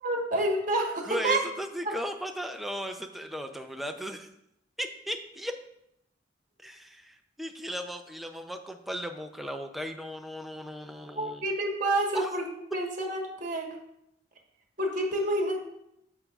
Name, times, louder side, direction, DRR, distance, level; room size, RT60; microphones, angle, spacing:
voice 1, 0.0-1.4 11.1-12.4 12.7-13.7 14.8-15.6, right 1 dB, 45° right, 2 dB, 1.3 m, -28 dB
voice 2, 1.0-4.3 4.8-5.5 6.6-11.4 12.1-12.3, equal, ahead, 5 dB, 0.5 m, -36 dB
8.3 x 7.2 x 2.4 m, 0.80 s
head